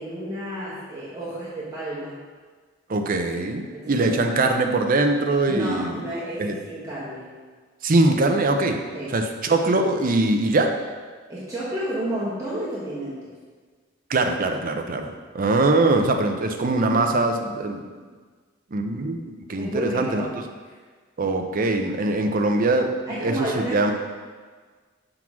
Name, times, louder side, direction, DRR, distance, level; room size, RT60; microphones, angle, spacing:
voice 1, 0.0-2.2 3.7-4.2 5.5-7.3 8.9-9.2 11.3-13.3 15.7-15.8 19.6-20.4 20.6-20.8 23.1-23.9, right 1 dB, 15° right, -9 dB, 1.3 m, -31 dB
voice 2, 2.9-6.0 6.4-6.6 7.8-8.8 9.1-10.8 14.1-15.1 15.3-17.8 18.7-20.3 21.2-22.9 23.2-23.9, right 2 dB, 45° right, 5 dB, 0.6 m, -22 dB
6.0 x 3.8 x 6.0 m, 1.5 s
head